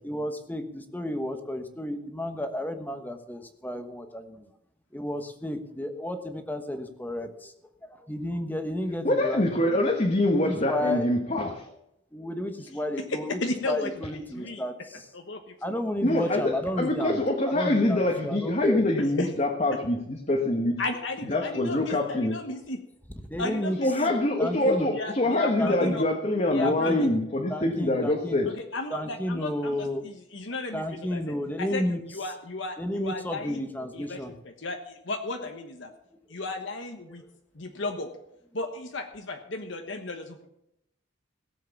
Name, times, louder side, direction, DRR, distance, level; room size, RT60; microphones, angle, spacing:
voice 1, 0.0-4.5 4.9-7.5 7.8-9.8 10.3-11.0 12.1-13.4 13.6-15.0 15.6-18.8 23.3-23.8 24.4-24.9 25.6-26.0 26.6-27.1 27.5-28.4 28.9-30.0 30.7-32.0 32.8-34.3, left 1 dB, 10° left, 7 dB, 1.2 m, -32 dB
voice 2, 9.0-11.7 16.0-20.8 21.3-22.4 23.8-28.5, left 1 dB, 35° left, 1 dB, 1.3 m, -25 dB
voice 3, 13.1-14.6 15.1-15.7 16.3-16.4 19.2-19.3 20.8-22.8 23.4-24.1 24.5-26.1 26.5-27.1 28.5-33.6 33.9-35.9 36.3-37.2 37.5-38.1 38.5-40.5, left 2 dB, 70° left, 5 dB, 1.3 m, -34 dB
17.5 x 7.7 x 7.1 m, 0.80 s
head